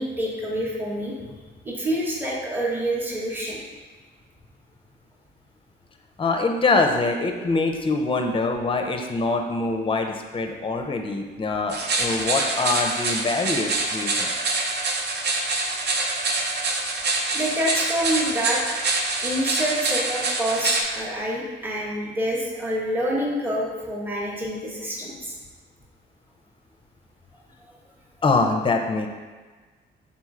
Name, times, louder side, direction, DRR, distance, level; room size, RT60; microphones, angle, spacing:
voice 1, 0.0-1.3 1.6-3.6 17.3-18.6 19.1-25.3, equal, 10° right, -4 dB, 0.9 m, -27 dB
voice 2, 6.2-14.3 28.2-29.1, left 3 dB, 25° left, 4 dB, 0.5 m, -24 dB
sound 1, 11.7-20.8, right 3 dB, 55° right, 0.6 m, -25 dB
3.9 x 3.0 x 3.7 m, 1.4 s
cardioid pair, 90°, 20 cm